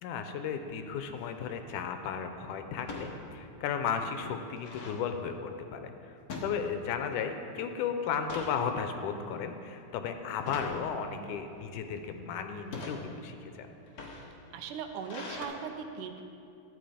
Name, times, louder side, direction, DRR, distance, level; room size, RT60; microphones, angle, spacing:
voice 1, 0.0-13.7, left 7 dB, 90° left, 7 dB, 2.2 m, -35 dB
sound 1, 1.0-1.4 2.8-3.1 3.6-3.7 4.0-5.0 6.3-7.1 7.4-7.7 8.1-8.6 9.2-9.5 10.4-10.8 11.5-12.0 12.6-13.0 13.8-15.4, left 3 dB, 70° left, 0.8 m, -43 dB
voice 2, 14.5-16.2, right 6 dB, 85° right, 6 dB, 2.2 m, -39 dB
12.0 x 8.5 x 5.0 m, 2.6 s
omnidirectional pair, 3.6 m